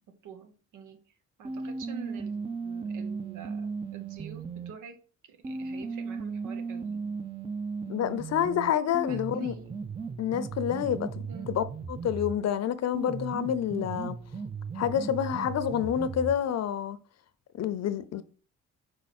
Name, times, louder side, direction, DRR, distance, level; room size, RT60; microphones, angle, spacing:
voice 1, 0.1-1.0 1.4-5.0 5.3-7.1 9.1-9.8 11.3-11.6, right 6 dB, 85° right, 1.1 m, -47 dB
sound 1, 1.4-4.7 5.4-12.4 12.9-16.4, right 5 dB, 20° right, 0.5 m, -36 dB
voice 2, 7.9-9.5 10.2-14.2 14.8-17.0 17.5-18.2, left 9 dB, 60° left, 0.7 m, -28 dB
5.4 x 4.8 x 4.2 m
cardioid pair, 90°, 30 cm